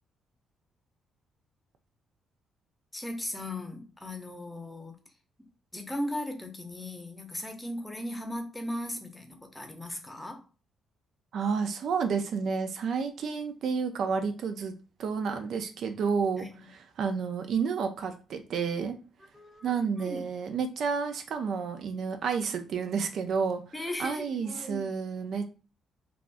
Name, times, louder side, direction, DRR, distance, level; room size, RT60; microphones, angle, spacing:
voice 1, 2.9-5.0 5.7-10.4 16.4-16.5 19.3-19.7 20.0-20.3 23.7-24.9, left 1 dB, 10° left, 4 dB, 0.7 m, -37 dB
voice 2, 11.3-14.7 15.0-16.5 17.0-19.0 19.6-23.6 24.0-25.5, right 5 dB, 65° right, 7 dB, 0.4 m, -30 dB
3.4 x 2.4 x 2.5 m, 0.35 s
cardioid pair, 90°, 0 cm